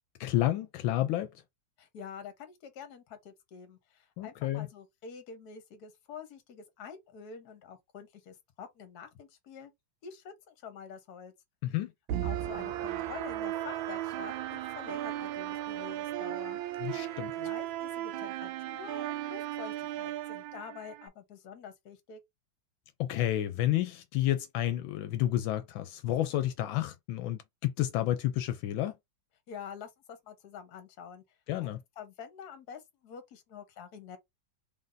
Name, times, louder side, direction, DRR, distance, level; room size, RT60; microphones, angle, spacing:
voice 1, 0.2-1.3 4.2-4.7 11.6-11.9 16.8-17.3 23.0-28.9 31.5-31.8, left 13 dB, 80° left, 1.3 m, -30 dB
voice 2, 1.8-9.7 10.0-11.3 12.2-16.6 17.4-22.2 29.5-31.2 31.6-31.7 32.0-34.2, left 6 dB, 60° left, 1.3 m, -47 dB
sound 1, 12.1-21.1, right 13 dB, 80° right, 1.3 m, -36 dB
3.8 x 2.6 x 3.9 m
omnidirectional pair, 2.1 m